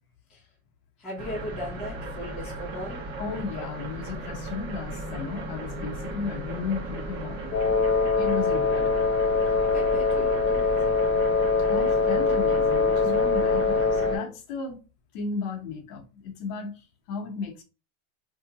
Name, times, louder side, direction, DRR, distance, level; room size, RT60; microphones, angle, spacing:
voice 1, 1.0-3.0 9.7-11.0, left 1 dB, ahead, 0.4 m, -38 dB
sound 1, 1.2-14.2, right 2 dB, 40° right, 0.9 m, -36 dB
voice 2, 3.2-7.6 8.1-9.1 11.7-14.8 15.1-17.6, left 5 dB, 40° left, 0.8 m, -34 dB
Wind instrument woodwind instrument, 7.5-14.3, left 4 dB, 85° left, 0.8 m, -23 dB
2.7 x 2.1 x 3.9 m
supercardioid pair, 175°, 43 cm